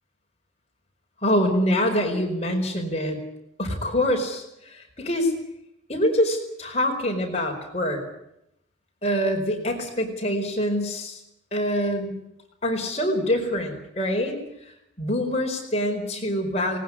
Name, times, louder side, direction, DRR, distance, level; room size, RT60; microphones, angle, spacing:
voice 1, 1.2-3.2 3.6-4.4 5.0-5.3 5.9-8.0 9.0-11.2 11.5-12.1 12.6-14.4 15.0-16.8, equal, 35° left, 2 dB, 4.8 m, -25 dB
19.5 x 19.5 x 10.0 m, 0.81 s
head